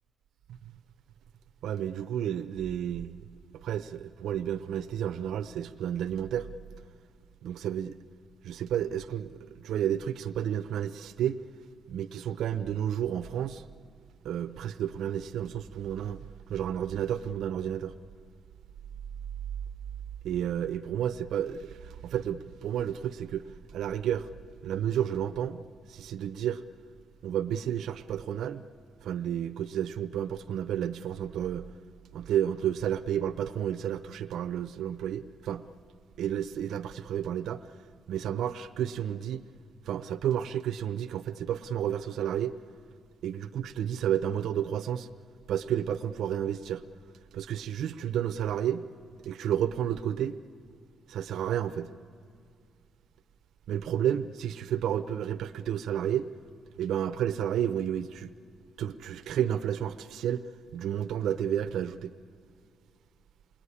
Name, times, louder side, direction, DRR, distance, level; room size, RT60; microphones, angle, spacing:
voice 1, 1.6-3.2 3.5-6.5 7.4-7.9 8.4-11.4 11.9-13.6 14.2-16.2 16.5-17.9 20.2-23.5 23.7-24.3 24.6-25.6 25.9-26.6 27.2-28.6 29.0-31.7 32.1-35.6 36.2-37.6 38.1-39.4 39.8-42.5 43.2-45.1 45.5-46.8 47.3-48.9 49.2-50.4 51.1-51.9 53.7-56.3 56.8-58.3 58.8-60.4 60.7-62.1, right 10 dB, 85° right, 0.6 m, -31 dB
27.5 x 20.5 x 9.9 m
wide cardioid pair, 175°, 0 cm